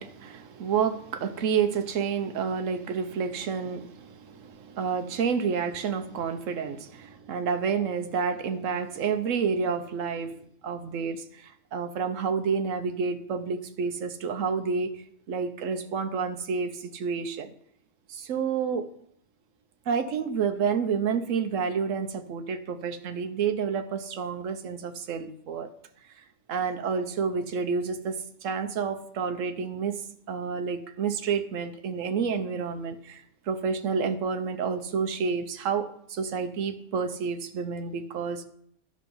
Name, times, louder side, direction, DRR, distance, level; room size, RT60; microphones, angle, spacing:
voice 1, 0.0-10.4 10.6-14.9 15.3-17.5 18.1-18.9 19.9-25.7 26.5-38.5, right 6 dB, 80° right, 8 dB, 1.2 m, -29 dB
11.0 x 6.3 x 5.5 m, 0.69 s
omnidirectional pair, 1.3 m